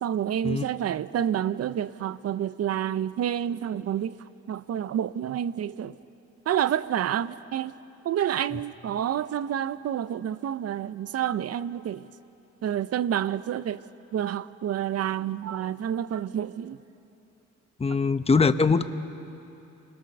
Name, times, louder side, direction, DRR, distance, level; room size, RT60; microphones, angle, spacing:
voice 1, 0.0-4.2 4.5-5.9 6.5-7.8 8.0-12.1 12.6-13.8 14.1-16.8, right 10 dB, 55° right, 0.7 m, -28 dB
voice 2, 17.8-18.8, left 4 dB, 20° left, 0.9 m, -22 dB
29.0 x 21.5 x 6.7 m
cardioid pair, 90°, 30 cm